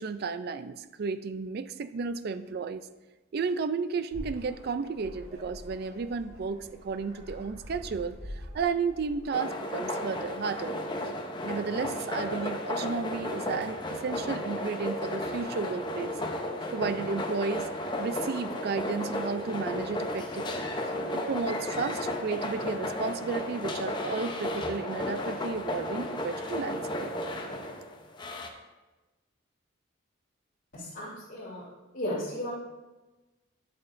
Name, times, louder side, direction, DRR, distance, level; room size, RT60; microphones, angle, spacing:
voice 1, 0.0-2.9 3.3-10.8 11.4-16.1 16.7-17.7 18.0-20.7 21.1-27.1, right 5 dB, 50° right, 12 dB, 0.4 m, -33 dB
sound 1, 4.1-9.4, equal, 30° right, 3.1 m, -45 dB
sound 2, 9.3-28.5, left 1 dB, 25° left, 0.7 m, -34 dB
voice 2, 30.7-31.6 31.9-32.5, left 1 dB, 50° left, -11 dB, 3.0 m, -35 dB
10.5 x 8.1 x 2.6 m, 1.1 s
head